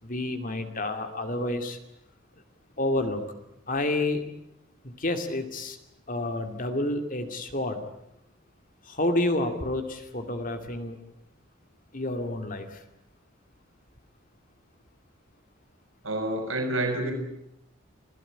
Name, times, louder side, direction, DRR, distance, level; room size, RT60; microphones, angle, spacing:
voice 1, 0.0-1.8 2.8-3.2 3.7-4.2 4.8-5.8 6.1-7.8 8.8-11.0 11.9-12.8, left 2 dB, 40° left, 6 dB, 2.4 m, -29 dB
voice 2, 16.0-17.1, right 1 dB, 70° right, 3 dB, 5.9 m, -28 dB
26.0 x 17.0 x 10.0 m, 0.82 s
head